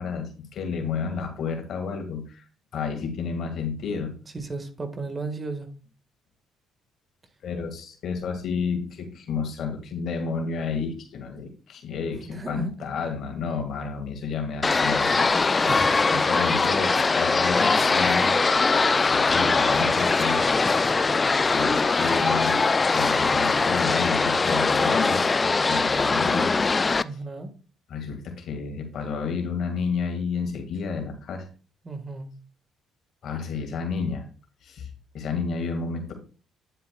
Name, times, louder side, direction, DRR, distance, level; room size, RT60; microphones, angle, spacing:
voice 1, 0.0-2.4 2.7-4.2 7.4-15.8 16.1-18.3 19.1-20.4 21.5-26.6 27.9-31.5 33.2-34.2 34.6-34.9 35.1-36.1, left 5 dB, 65° left, 5 dB, 1.9 m, -31 dB
voice 2, 4.3-5.7 12.3-12.7 15.6-16.2 27.0-27.5 31.8-32.4, right 3 dB, 30° right, 6 dB, 1.6 m, -34 dB
sound 1, 14.6-27.0, left 4 dB, 30° left, 0.4 m, -21 dB
9.3 x 7.6 x 2.3 m, 0.37 s
supercardioid pair, 70°, 0 cm